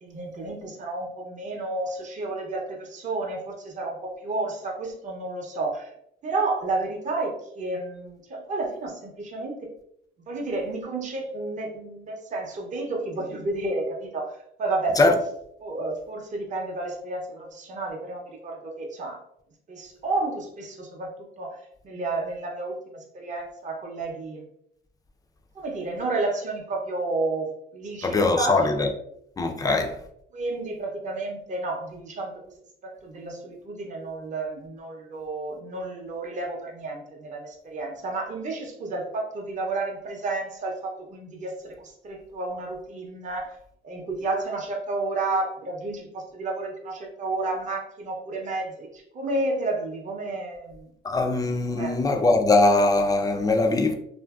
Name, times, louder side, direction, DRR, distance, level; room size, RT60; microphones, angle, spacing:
voice 1, 0.0-5.9 6.2-9.7 10.3-14.3 14.6-15.1 15.6-19.2 19.7-21.6 21.8-24.4 25.5-28.9 29.6-29.8 30.3-32.4 32.8-43.6 43.8-50.9 51.7-52.0, right 2 dB, 40° right, 0.6 m, -31 dB
voice 2, 28.0-28.9 29.4-29.9 51.0-53.9, left 2 dB, 20° left, 0.4 m, -21 dB
2.7 x 2.5 x 2.3 m
cardioid pair, 90°, 20 cm